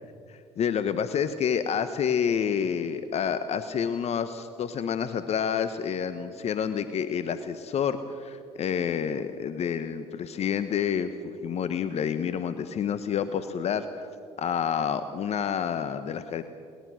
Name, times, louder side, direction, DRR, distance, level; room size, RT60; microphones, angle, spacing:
voice 1, 0.3-14.1 14.4-16.4, left 7 dB, 50° left, 11 dB, 1.1 m, -29 dB
22.0 x 20.0 x 6.4 m, 2.5 s
hypercardioid pair, 65°, 14 cm